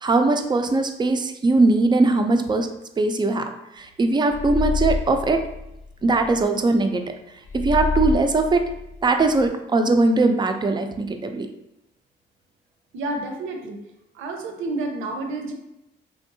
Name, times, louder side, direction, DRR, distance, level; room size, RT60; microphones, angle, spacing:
voice 1, 0.0-2.7 3.0-5.4 6.0-7.0 7.5-8.6 9.0-11.5, right 3 dB, 25° right, 6 dB, 0.3 m, -20 dB
sound 1, 4.3-6.4 7.4-9.5, left 4 dB, 90° left, 0.8 m, -28 dB
voice 2, 12.9-13.8 14.1-15.5, right 2 dB, 85° right, 3 dB, 0.6 m, -29 dB
3.4 x 2.6 x 2.6 m, 0.87 s
cardioid pair, 90°, 20 cm